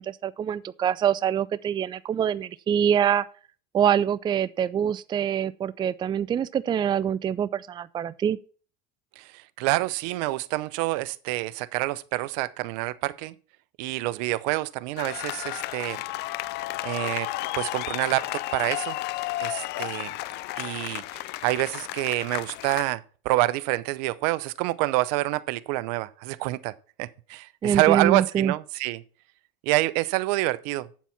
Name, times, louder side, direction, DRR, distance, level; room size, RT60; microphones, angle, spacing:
voice 1, 0.0-3.3 3.7-8.4 27.6-28.5, right 9 dB, 20° right, 0.4 m, -25 dB
voice 2, 9.2-13.3 13.8-16.0 16.8-17.3 17.6-19.0 19.4-20.1 20.6-26.7 27.0-29.0 29.6-30.9, right 19 dB, 70° right, 0.7 m, -27 dB
sound 1, 15.0-22.9, left 18 dB, 50° left, 0.5 m, -33 dB
8.4 x 7.3 x 5.8 m
supercardioid pair, 120°, 21 cm